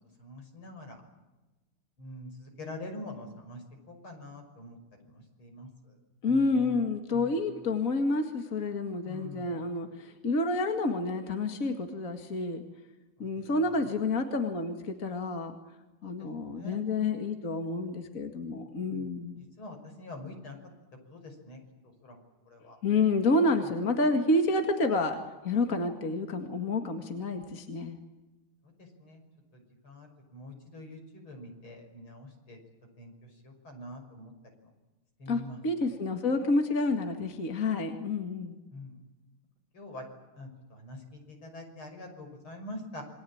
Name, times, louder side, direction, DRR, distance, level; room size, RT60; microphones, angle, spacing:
voice 1, 0.2-1.0 2.0-3.6 3.9-4.8 5.4-5.9 6.3-6.8 7.1-7.3 9.0-9.6 13.2-13.3 16.0-16.8 18.9-19.1 19.6-20.6 21.1-21.6 22.0-22.2 22.5-22.8 29.0-29.2 29.5-32.6 33.0-34.3 35.2-35.6 38.7-39.0 39.7-40.0 40.4-43.0, left 1 dB, 70° left, 4 dB, 6.9 m, -45 dB
voice 2, 6.2-12.6 13.2-15.6 16.0-19.5 22.8-25.2 25.4-28.0 35.3-38.6, left 2 dB, 40° left, 5 dB, 2.4 m, -29 dB
27.5 x 23.5 x 8.8 m, 1.1 s
omnidirectional pair, 2.4 m